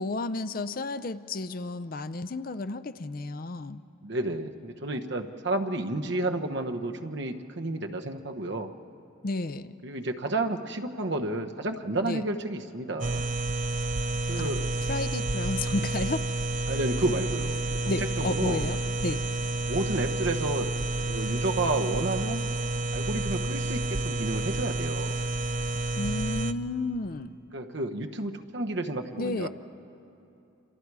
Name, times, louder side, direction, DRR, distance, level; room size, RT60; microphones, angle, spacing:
voice 1, 0.0-3.8 9.2-9.7 12.0-12.2 14.4-14.5 14.9-16.2 17.8-19.2 26.0-27.4 29.2-29.5, left 2 dB, 45° left, 12 dB, 0.5 m, -32 dB
voice 2, 4.0-8.7 9.8-13.2 14.3-14.6 16.7-17.6 17.8-18.7 19.7-20.7 21.1-22.5 22.9-25.2 27.5-29.5, right 2 dB, 60° right, 5 dB, 1.1 m, -31 dB
sound 1, 13.0-26.5, right 2 dB, 40° right, 0.6 m, -30 dB
29.0 x 26.5 x 4.8 m, 2.7 s
head